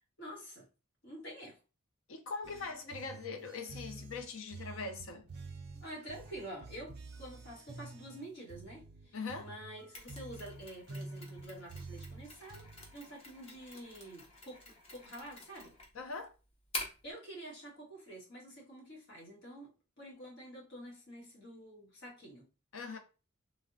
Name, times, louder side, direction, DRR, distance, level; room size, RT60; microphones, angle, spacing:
voice 1, 0.2-0.7 1.0-1.6 5.8-15.7 17.0-22.5 22.8-23.0, right 1 dB, 55° left, 1.3 m, -48 dB
voice 2, 2.1-5.3 9.1-9.5 15.9-16.3 22.7-23.0, left 4 dB, 75° left, 0.6 m, -41 dB
sound 1, 2.4-12.9, right 3 dB, 50° right, 0.4 m, -49 dB
Mechanisms, 9.9-17.1, left 1 dB, 30° left, 0.7 m, -47 dB
3.4 x 2.1 x 2.5 m
head